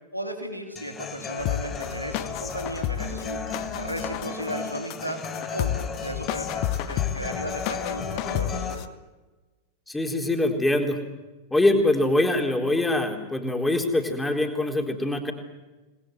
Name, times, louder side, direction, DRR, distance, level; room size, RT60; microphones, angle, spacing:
voice 1, 0.1-3.4 3.7-5.2 5.5-8.9, right 1 dB, 90° right, 3 dB, 3.1 m, -35 dB
Human voice / Acoustic guitar, 0.8-8.7, left 4 dB, 25° left, 5.2 m, -35 dB
sound 1, 1.4-8.9, left 12 dB, 45° left, 1.3 m, -31 dB
voice 2, 9.9-11.0 11.5-15.3, left 2 dB, 10° left, 3 dB, 4.0 m, -23 dB
29.5 x 20.5 x 8.0 m, 1.2 s
figure-of-eight pair, 90°, 0 cm